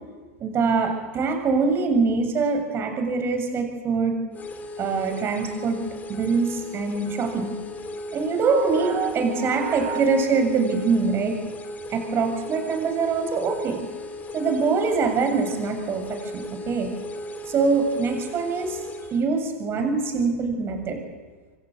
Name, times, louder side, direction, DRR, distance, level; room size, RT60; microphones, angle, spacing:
voice 1, 0.4-4.2 4.8-5.8 6.1-7.5 8.1-11.4 11.9-13.8 14.3-16.9 17.5-18.8 19.1-21.0, right 4 dB, 30° right, 5 dB, 7.2 m, -24 dB
sound 1, 4.3-19.2, left 2 dB, 20° left, 3.3 m, -37 dB
27.5 x 24.5 x 8.4 m, 1.4 s
hypercardioid pair, 115°, 8 cm